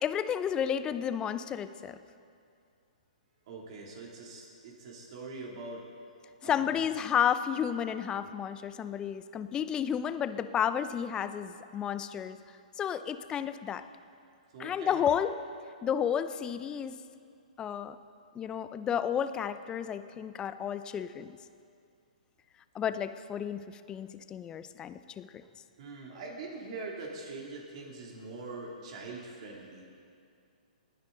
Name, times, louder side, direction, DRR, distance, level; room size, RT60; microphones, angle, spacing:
voice 1, 0.0-2.0 6.4-12.4 12.8-13.8 14.6-15.3 15.8-17.0 17.6-18.0 18.3-21.3 22.7-25.4, left 8 dB, 20° left, 12 dB, 0.6 m, -32 dB
voice 2, 3.5-5.8 6.4-6.9 14.5-15.0 25.8-29.8, right 3 dB, 50° right, -2 dB, 2.9 m, -43 dB
28.0 x 10.5 x 4.0 m, 2.4 s
figure-of-eight pair, 125°, 4 cm